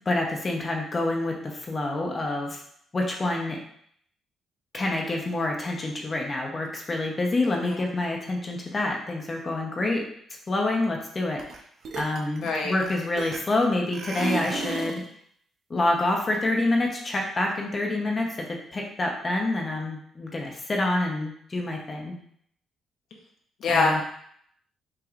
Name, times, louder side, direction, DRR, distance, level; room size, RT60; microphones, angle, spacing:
voice 1, 0.1-2.6 2.9-3.6 4.7-10.0 10.5-11.4 12.0-15.0 15.7-22.2 23.7-24.0, left 2 dB, 35° left, 0 dB, 0.9 m, -27 dB
voice 2, 7.5-7.8 12.4-12.7 23.6-24.0, left 3 dB, 70° left, -1 dB, 0.9 m, -25 dB
sound 1, 11.4-11.6 11.8-13.6 13.9-15.1, right 4 dB, 60° right, 0.6 m, -33 dB
5.8 x 3.0 x 2.5 m, 0.67 s
cardioid pair, 90°, 0 cm